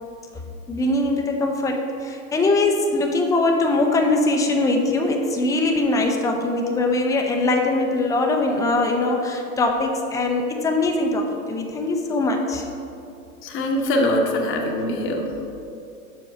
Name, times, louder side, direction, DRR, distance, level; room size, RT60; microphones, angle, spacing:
voice 1, 0.7-12.6, left 2 dB, 10° left, 2 dB, 0.5 m, -22 dB
voice 2, 13.4-15.5, left 1 dB, 30° left, 1 dB, 0.9 m, -23 dB
5.9 x 4.9 x 5.0 m, 2.6 s
hypercardioid pair, 100°, 42 cm